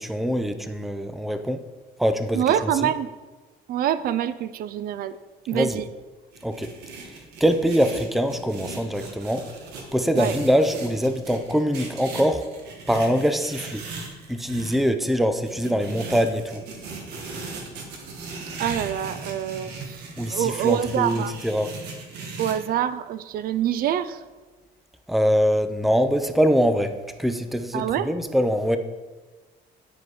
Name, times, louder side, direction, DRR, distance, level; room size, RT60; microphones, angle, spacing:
voice 1, 0.0-1.6 2.0-2.7 5.5-5.8 6.4-6.7 7.4-9.4 9.9-12.4 12.9-13.8 14.3-16.6 20.2-21.7 25.1-28.8, equal, ahead, 9 dB, 0.5 m, -23 dB
voice 2, 2.3-3.1 3.7-5.2 5.5-5.9 10.2-10.3 18.6-20.0 20.3-21.3 22.4-24.2 27.7-28.1, right 10 dB, 60° right, 14 dB, 0.4 m, -25 dB
sound 1, 6.3-14.8 15.5-22.5, right 4 dB, 80° right, 1.6 m, -38 dB
9.3 x 4.9 x 4.7 m, 1.3 s
cardioid pair, 110°, 17 cm